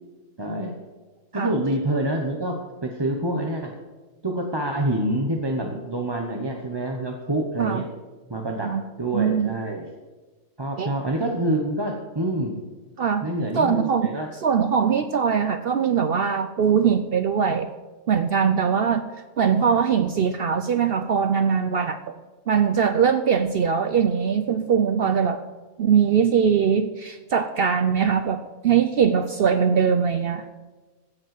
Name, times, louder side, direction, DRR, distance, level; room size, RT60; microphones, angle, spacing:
voice 1, 0.4-0.7 1.3-3.7 4.2-7.9 8.3-8.7 9.0-9.8 10.6-12.6 13.2-14.3, right 1 dB, 20° right, 1 dB, 1.0 m, -26 dB
voice 2, 9.1-9.6 10.8-10.9 13.0-13.3 13.5-14.1 14.4-17.7 18.1-19.1 19.4-22.2 22.5-25.4 25.8-30.5, right 7 dB, 60° right, 10 dB, 0.6 m, -21 dB
15.5 x 5.4 x 7.7 m, 1.2 s
omnidirectional pair, 1.5 m